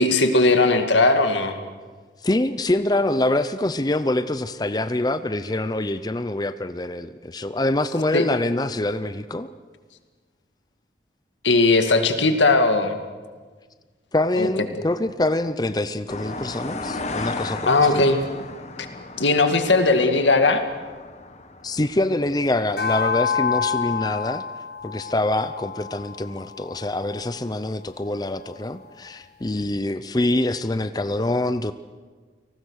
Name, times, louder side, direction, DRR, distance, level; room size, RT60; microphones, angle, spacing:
voice 1, 0.0-1.5 8.1-8.2 11.4-13.0 14.3-14.5 17.7-18.2 19.2-20.6, left 3 dB, 90° left, 6 dB, 2.2 m, -18 dB
voice 2, 2.2-9.5 14.1-18.1 21.6-24.4 24.8-31.7, left 1 dB, 20° left, 11 dB, 0.6 m, -25 dB
sound 1, 16.1-24.0, left 3 dB, 35° left, 1.3 m, -36 dB
sound 2, 22.8-27.4, left 6 dB, 65° left, 1.4 m, -28 dB
29.5 x 19.0 x 6.5 m, 1.5 s
head